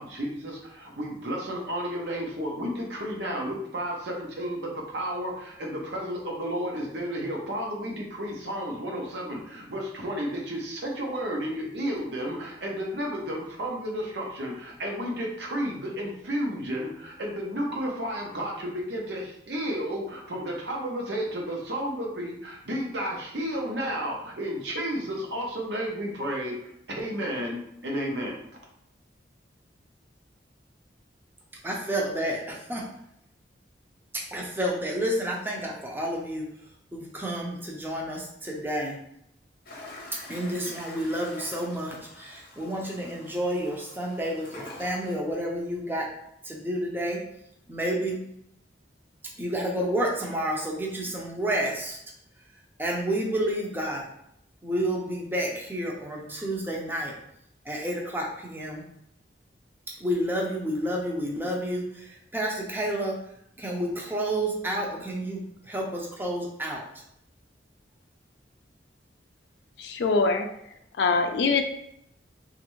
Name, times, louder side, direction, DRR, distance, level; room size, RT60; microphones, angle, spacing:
voice 1, 0.0-28.4, equal, 70° right, -1 dB, 0.8 m, -32 dB
voice 2, 31.6-32.8 34.3-36.5 36.9-39.0 40.3-46.1 46.4-47.2 47.7-48.2 49.4-52.0 52.8-54.0 54.6-57.1 57.7-58.8 60.0-63.2 63.6-65.4 65.7-66.8, right 1 dB, 10° right, -1 dB, 0.5 m, -30 dB
Toilet flush, 39.7-45.2, left 2 dB, 55° left, 0.8 m, -46 dB
voice 3, 69.8-70.5 71.0-71.6, left 4 dB, 70° left, 6 dB, 0.4 m, -23 dB
3.1 x 2.5 x 3.0 m, 0.75 s
head